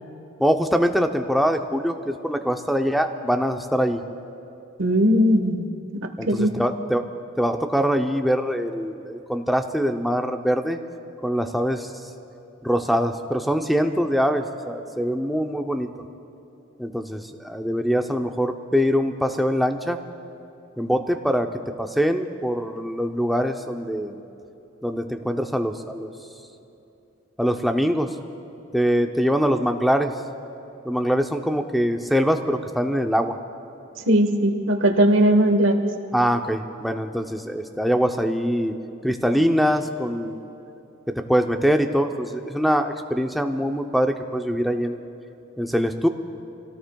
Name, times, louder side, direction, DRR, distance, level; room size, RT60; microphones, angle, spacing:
voice 1, 0.4-4.0 6.2-7.0 7.4-10.8 11.2-11.9 12.6-15.9 16.8-20.0 20.8-24.2 24.8-26.1 27.4-28.1 28.7-30.1 30.8-33.4 36.1-38.7 39.0-40.4 41.1-45.0 45.6-46.1, equal, ahead, 4 dB, 0.6 m, -23 dB
voice 2, 4.8-5.7 6.0-6.5 34.1-35.8, equal, 75° right, 6 dB, 1.2 m, -19 dB
28.5 x 17.5 x 2.3 m, 2.8 s
head